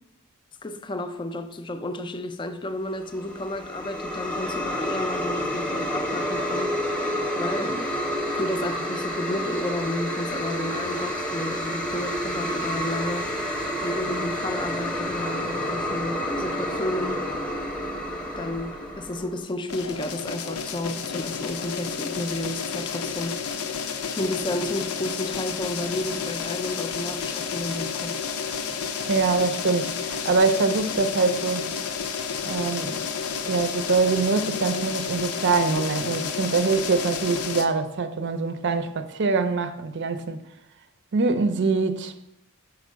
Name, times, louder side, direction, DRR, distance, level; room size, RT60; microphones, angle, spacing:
voice 1, 0.6-6.8 7.3-7.9 8.4-17.2 18.4-23.4 24.2-28.2, left 1 dB, 20° left, 0.4 m, -32 dB
sound 1, 3.0-19.4, equal, 5° left, 0.8 m, -29 dB
sound 2, 19.7-37.6, left 6 dB, 80° left, 0.6 m, -31 dB
voice 2, 29.1-31.7 32.4-33.0 33.4-40.4 41.1-42.1, right 4 dB, 50° right, 0.5 m, -24 dB
5.3 x 4.5 x 6.2 m
head